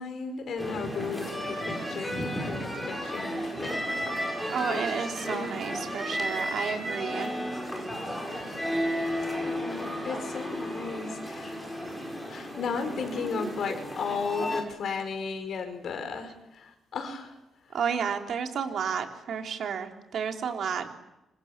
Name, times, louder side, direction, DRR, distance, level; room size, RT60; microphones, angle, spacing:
voice 1, 0.0-4.8 5.2-5.8 9.4-11.7 12.3-17.4, left 5 dB, 60° left, 6 dB, 5.4 m, -35 dB
sound 1, 0.6-14.6, equal, ahead, 6.9 m, -33 dB
voice 2, 4.5-7.3 17.7-21.0, right 7 dB, 65° right, 4 dB, 3.4 m, -31 dB
27.5 x 26.0 x 7.4 m, 0.95 s
cardioid pair, 130°, 0 cm